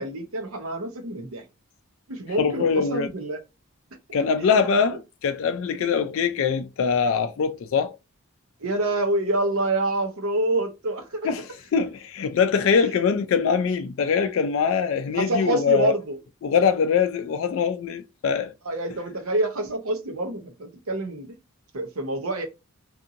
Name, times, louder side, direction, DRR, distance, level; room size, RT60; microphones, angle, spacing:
voice 1, 0.0-1.4 2.1-3.4 4.4-4.5 8.6-11.3 12.8-12.9 15.1-16.2 18.6-21.4 21.7-22.5, right 2 dB, 70° right, 0.8 m, -27 dB
voice 2, 2.4-3.1 4.1-8.0 11.2-15.9 16.4-18.5, left 6 dB, 60° left, 0.3 m, -23 dB
2.7 x 2.6 x 2.5 m
head